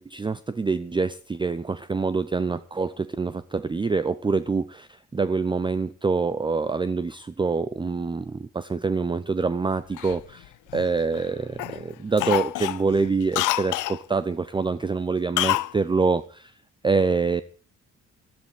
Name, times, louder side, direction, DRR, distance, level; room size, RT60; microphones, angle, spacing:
voice 1, 0.0-16.5 16.8-17.4, right 4 dB, 15° right, 15 dB, 0.6 m, -26 dB
Cough, 10.0-11.2 11.6-11.8 12.2-14.0 15.4-15.7 16.0-16.1, left 17 dB, 85° left, 0.6 m, -27 dB
13.0 x 13.0 x 4.9 m, 0.39 s
cardioid pair, 90°, 30 cm